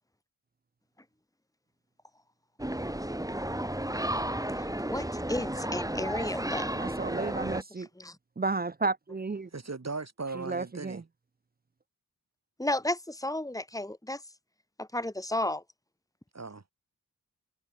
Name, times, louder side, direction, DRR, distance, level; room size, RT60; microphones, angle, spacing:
sound 1, 2.6-7.6, right 1 dB, 10° right, 3.9 m, -33 dB
voice 1, 4.6-6.7 7.8-8.2 12.6-14.2 14.8-15.6, left 1 dB, 10° left, 3.1 m, -33 dB
voice 2, 6.7-7.9 8.4-9.5 10.3-11.0, right 3 dB, 25° right, 0.7 m, -32 dB
voice 3, 9.5-11.0 16.3-16.6, right 3 dB, 45° right, 6.8 m, -38 dB
cardioid pair, 50°, 36 cm